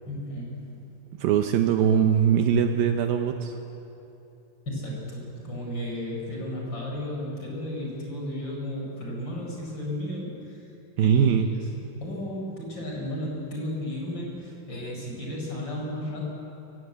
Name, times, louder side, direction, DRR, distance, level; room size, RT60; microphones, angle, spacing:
voice 1, 0.1-0.7 4.7-10.6 11.0-16.2, left 1 dB, 30° left, -2 dB, 5.4 m, -34 dB
voice 2, 1.2-3.5 11.0-11.5, right 8 dB, 75° right, 6 dB, 2.5 m, -21 dB
23.0 x 17.5 x 8.2 m, 2.9 s
omnidirectional pair, 4.5 m